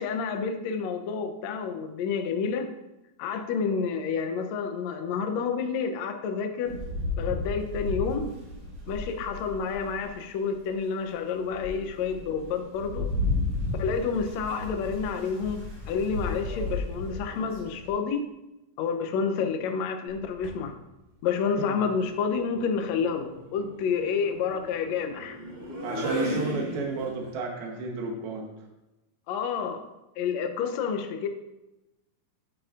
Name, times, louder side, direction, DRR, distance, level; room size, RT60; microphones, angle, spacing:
voice 1, 0.0-2.7 3.2-6.7 7.2-8.3 8.9-13.1 13.8-15.6 15.9-18.2 18.8-20.7 21.2-25.4 29.3-29.9 30.2-31.3, left 6 dB, 85° left, 6 dB, 1.5 m, -29 dB
Rain, 6.7-10.2 10.7-10.8 11.3-17.9, left 2 dB, 55° right, 3.0 m, -33 dB
sound 1, 20.1-20.6 22.0-27.3, equal, 30° right, 2.8 m, -36 dB
voice 2, 25.8-28.5, right 3 dB, 90° right, 0 dB, 3.1 m, -32 dB
10.0 x 8.7 x 2.5 m, 0.97 s
omnidirectional pair, 4.2 m